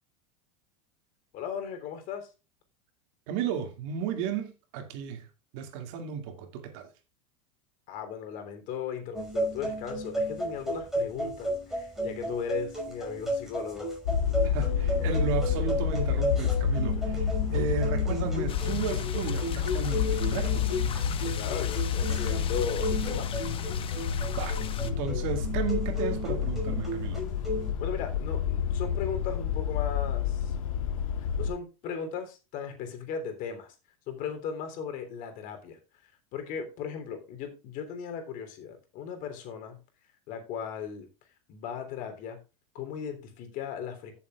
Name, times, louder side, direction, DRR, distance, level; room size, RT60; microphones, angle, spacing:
voice 1, 1.3-2.3 7.9-13.9 21.2-23.4 27.8-30.6 31.4-33.7 34.1-39.8 40.3-41.1 41.5-42.4 42.7-44.2, left 7 dB, 55° left, 3.3 m, -37 dB
voice 2, 3.3-5.3 5.5-6.9 14.4-20.7 24.2-27.2, right 7 dB, 65° right, 2.4 m, -34 dB
sound 1, 9.1-27.7, equal, ahead, 5.6 m, -34 dB
sound 2, 14.1-31.5, left 8 dB, 85° left, 1.3 m, -29 dB
sound 3, 18.5-24.9, left 9 dB, 30° left, 1.1 m, -41 dB
14.5 x 7.2 x 2.4 m
hypercardioid pair, 105°, 17 cm